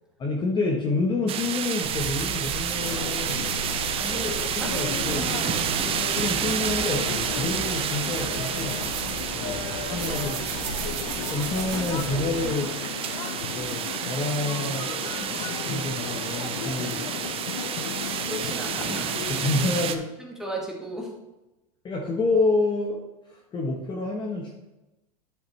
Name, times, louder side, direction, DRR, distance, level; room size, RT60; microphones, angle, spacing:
voice 1, 0.2-3.6 4.5-5.3 6.1-8.8 9.3-10.4 11.3-12.7 13.5-14.9 15.7-17.1 19.3-20.0 21.8-24.7, left 3 dB, 25° left, -1 dB, 1.2 m, -28 dB
sound 1, 1.3-20.0, right 9 dB, 30° right, 0.6 m, -30 dB
sound 2, 1.8-12.5, right 5 dB, 55° right, 2.0 m, -36 dB
sound 3, 2.8-19.5, left 9 dB, 65° left, 0.8 m, -35 dB
voice 2, 4.0-4.7 5.8-6.0 15.2-15.6 18.2-19.1 19.5-19.7 20.3-21.1, equal, 5° right, -2 dB, 1.9 m, -35 dB
10.5 x 5.7 x 3.3 m, 1.0 s
supercardioid pair, 125°, 19 cm